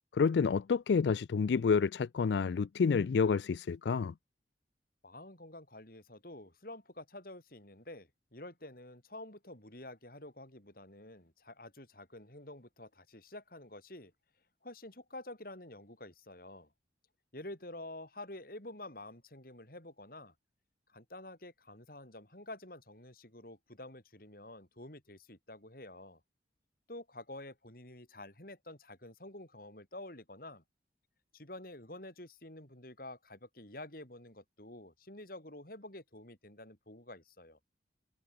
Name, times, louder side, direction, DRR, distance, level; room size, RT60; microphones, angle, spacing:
voice 1, 0.1-4.1, left 5 dB, 70° left, 0.4 m, -29 dB
voice 2, 5.0-14.1 14.6-16.7 17.3-20.3 20.9-26.2 26.9-30.6 31.3-37.6, left 1 dB, 50° left, 4.9 m, -49 dB
head